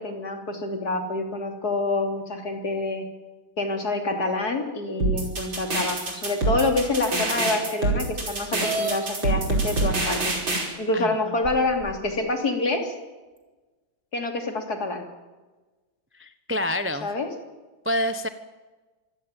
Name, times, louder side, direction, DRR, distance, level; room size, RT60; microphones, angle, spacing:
voice 1, 0.0-3.0 3.6-10.4 10.8-12.9 14.1-15.1 17.0-17.3, left 2 dB, 45° left, 4 dB, 3.6 m, -27 dB
sound 1, 5.0-10.6, right 2 dB, 60° right, 5.9 m, -25 dB
sound 2, 8.6-9.0 10.0-10.1 10.7-10.8 11.4-12.1, right 3 dB, 30° right, 3.7 m, -30 dB
voice 2, 10.9-11.3 16.2-17.1 17.8-18.3, left 1 dB, 15° right, 10 dB, 0.4 m, -27 dB
25.5 x 17.0 x 9.1 m, 1.2 s
omnidirectional pair, 2.4 m